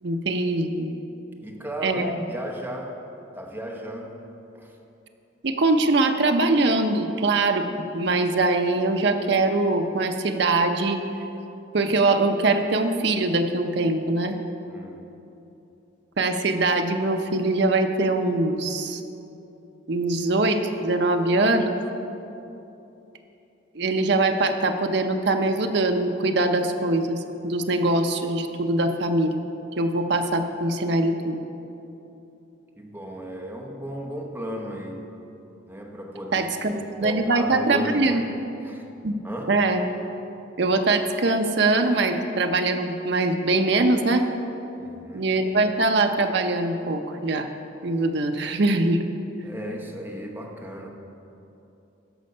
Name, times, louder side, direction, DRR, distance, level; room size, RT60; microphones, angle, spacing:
voice 1, 0.0-1.0 1.8-2.1 5.4-7.7 7.9-11.0 11.7-14.4 16.2-19.0 19.9-21.7 23.7-29.4 29.8-31.4 36.3-36.7 37.0-38.2 39.0-39.1 39.5-39.8 40.6-44.3 45.1-47.5 47.8-49.0, right 2 dB, 55° right, 5 dB, 0.6 m, -22 dB
voice 2, 1.4-3.0 3.3-4.3 4.5-4.8 14.7-15.1 32.8-35.1 35.7-38.3 38.6-38.9 39.2-39.6 44.8-45.3 49.4-50.9, equal, 10° right, 1 dB, 0.8 m, -35 dB
13.0 x 5.3 x 5.4 m, 2.9 s
head